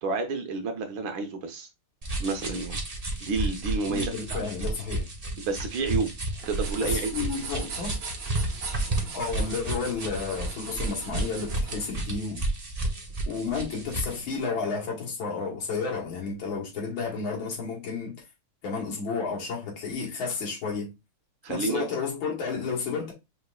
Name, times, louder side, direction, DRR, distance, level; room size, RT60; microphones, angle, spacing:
voice 1, 0.0-1.7 2.2-2.8 3.2-4.4 5.4-6.2 6.5-7.3 21.4-21.8, right 4 dB, 75° right, 1.7 m, -30 dB
sound 1, 2.0-14.2, right 1 dB, 35° right, 0.6 m, -32 dB
voice 2, 3.9-5.1 6.8-8.0 9.1-12.4 13.2-18.2 18.6-20.9 21.5-23.1, left 5 dB, 75° left, 2.3 m, -32 dB
sound 2, 6.3-11.9, right 4 dB, 50° right, 1.2 m, -39 dB
5.7 x 3.3 x 2.4 m
omnidirectional pair, 2.2 m